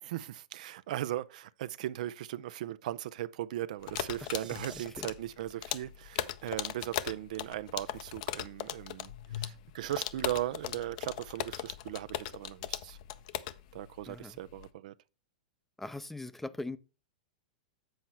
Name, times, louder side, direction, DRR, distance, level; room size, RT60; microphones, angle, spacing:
voice 1, 0.0-13.0 13.7-14.9, right 13 dB, 65° right, 0.4 m, -38 dB
sound 1, 3.8-14.7, left 13 dB, 60° left, 0.6 m, -38 dB
sound 2, 4.0-4.9, right 8 dB, 85° right, 0.9 m, -50 dB
voice 2, 15.8-16.8, left 2 dB, 5° left, 0.5 m, -40 dB
7.8 x 4.5 x 5.6 m
hypercardioid pair, 120°, 4 cm